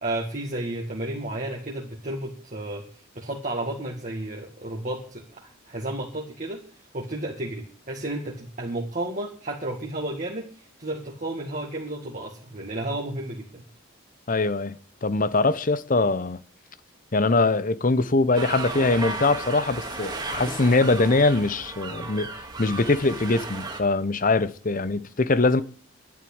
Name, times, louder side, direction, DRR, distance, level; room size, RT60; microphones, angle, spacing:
voice 1, 0.0-2.9 3.2-6.7 6.9-13.6, right 1 dB, 35° right, 2.0 m, -32 dB
voice 2, 14.3-14.8 15.0-16.4 17.1-22.3 22.6-25.6, left 3 dB, 40° left, 0.8 m, -22 dB
sound 1, 18.3-23.8, right 3 dB, 20° right, 2.2 m, -34 dB
11.5 x 11.0 x 8.7 m
head